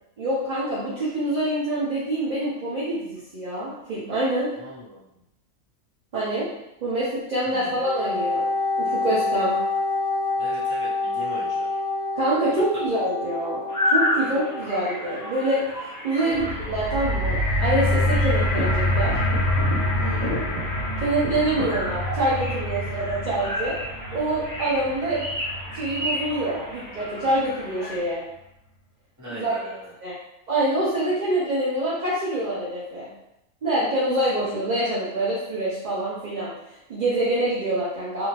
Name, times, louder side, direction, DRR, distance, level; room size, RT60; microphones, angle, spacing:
voice 1, 0.2-4.5 6.1-6.5 6.8-8.4 8.8-9.6 12.1-19.1 21.0-23.8 24.1-25.3 25.7-28.2 29.3-29.5 30.0-30.2 30.5-33.1 33.6-38.3, right 1 dB, 50° right, -8 dB, 0.5 m, -26 dB
voice 2, 4.5-5.1 7.5-7.8 10.4-11.8 12.7-12.9 16.1-16.7 20.0-20.4 29.2-29.9, equal, 15° right, -10 dB, 1.0 m, -39 dB
Wind instrument woodwind instrument, 7.8-15.5, left 3 dB, 45° left, 0.9 m, -27 dB
sound 1, 13.7-28.0, left 1 dB, 15° left, 0.8 m, -31 dB
sound 2, 16.3-26.6 27.3-27.4, left 1 dB, 80° left, 1.0 m, -26 dB
2.6 x 2.4 x 3.1 m, 0.85 s
omnidirectional pair, 1.4 m